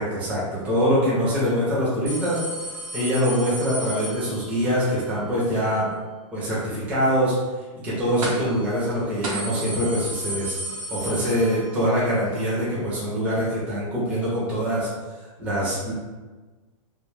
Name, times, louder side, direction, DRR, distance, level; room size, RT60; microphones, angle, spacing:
voice 1, 0.0-2.4 2.9-5.9 6.3-7.3 7.8-10.6 10.9-14.9 15.4-15.9, equal, 10° right, -8 dB, 0.4 m, -24 dB
sound 1, 2.1-4.8 8.2-8.6 8.9-9.0 9.2-12.0 12.3-12.4 13.4-13.5, right 1 dB, 75° right, 0.7 m, -33 dB
2.2 x 2.0 x 3.0 m, 1.3 s
supercardioid pair, 165°, 17 cm